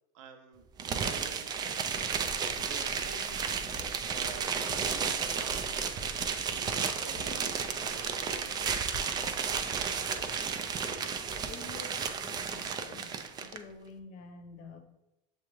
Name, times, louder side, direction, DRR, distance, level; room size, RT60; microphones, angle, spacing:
voice 1, 0.1-0.6 0.9-1.6 2.6-3.6 4.1-5.9 6.3-8.8, right 6 dB, 70° right, 7 dB, 0.6 m, -49 dB
sound 1, 0.8-13.6, right 6 dB, 25° right, 0.3 m, -33 dB
sound 2, 2.1-10.2, equal, 15° left, 1.0 m, -50 dB
sound 3, 4.3-10.6, right 4 dB, 50° right, 0.9 m, -51 dB
voice 2, 11.5-13.1 13.4-14.8, left 3 dB, 50° left, 6 dB, 0.8 m, -48 dB
6.9 x 2.4 x 3.0 m, 0.94 s
supercardioid pair, 110°, 17 cm